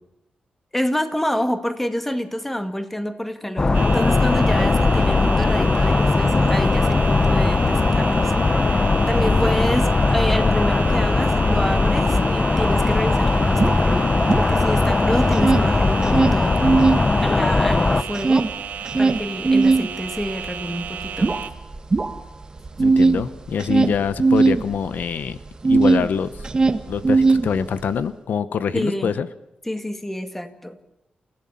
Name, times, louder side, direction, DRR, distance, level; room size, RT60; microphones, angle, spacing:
voice 1, 0.7-8.3 9.1-16.9 17.2-18.5 19.0-21.4 28.7-29.2 29.6-30.8, equal, 10° left, 8 dB, 2.1 m, -27 dB
sound 1, 3.6-18.0, left 3 dB, 25° left, 1.0 m, -19 dB
sound 2, 3.7-21.5, right 7 dB, 90° right, 2.8 m, -33 dB
sound 3, 12.6-12.7 12.9-14.9 15.2-17.1 17.4-26.1 26.4-27.9, right 3 dB, 25° right, 1.5 m, -19 dB
voice 2, 22.8-25.4 25.7-26.3 26.9-29.3, left 7 dB, 80° left, 14 dB, 1.1 m, -25 dB
29.0 x 16.5 x 7.1 m, 0.87 s
wide cardioid pair, 145°, 3 cm